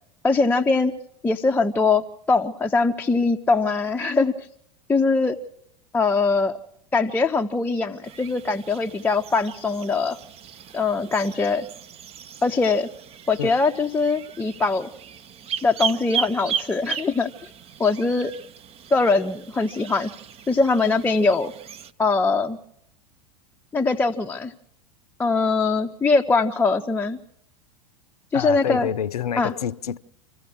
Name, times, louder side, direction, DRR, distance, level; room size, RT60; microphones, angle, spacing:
voice 1, 0.2-0.9 1.2-4.5 4.9-5.4 5.9-6.5 6.9-10.2 10.7-11.7 12.4-12.9 13.3-14.9 15.6-17.5 17.8-18.3 18.9-20.1 20.5-21.5 22.0-22.6 23.7-24.5 25.2-27.2 28.3-28.9 29.4-29.5, left 3 dB, 10° left, 0.7 m, -22 dB
sound 1, 8.0-21.9, right 7 dB, 30° right, 0.8 m, -36 dB
voice 2, 28.3-30.0, left 9 dB, 75° left, 0.7 m, -28 dB
27.0 x 15.5 x 6.3 m
figure-of-eight pair, 85°, 20 cm